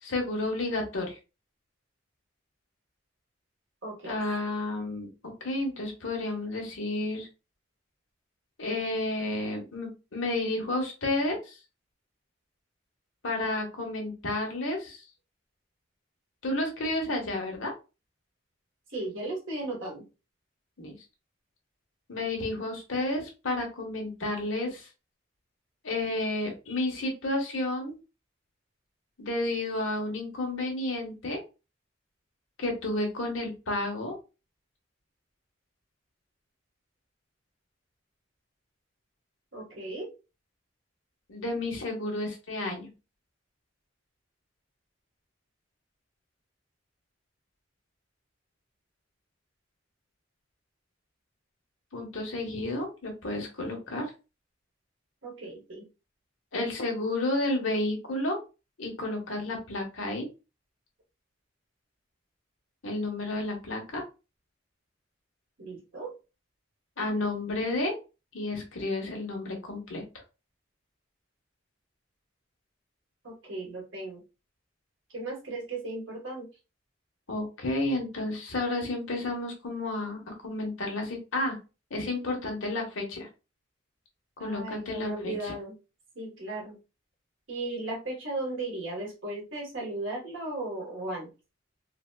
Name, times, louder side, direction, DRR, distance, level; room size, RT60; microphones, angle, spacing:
voice 1, 0.0-1.2 4.1-5.1 5.4-7.3 8.6-11.6 13.2-15.0 16.4-17.7 20.8-20.9 22.1-24.9 25.8-28.0 29.2-31.4 32.6-34.2 41.3-42.9 51.9-54.1 56.5-58.4 58.8-60.3 62.8-64.0 67.0-68.0 68.3-70.0 77.3-81.6 81.9-83.3 84.4-85.5, left 2 dB, 80° left, 1 dB, 1.2 m, -31 dB
voice 2, 3.8-4.1 18.9-20.0 39.5-40.1 55.2-55.8 65.6-66.1 73.2-74.2 75.1-76.5 84.4-85.8 86.1-86.8 87.5-91.3, right 2 dB, 80° right, -1 dB, 1.5 m, -36 dB
3.9 x 2.2 x 2.3 m, 0.29 s
head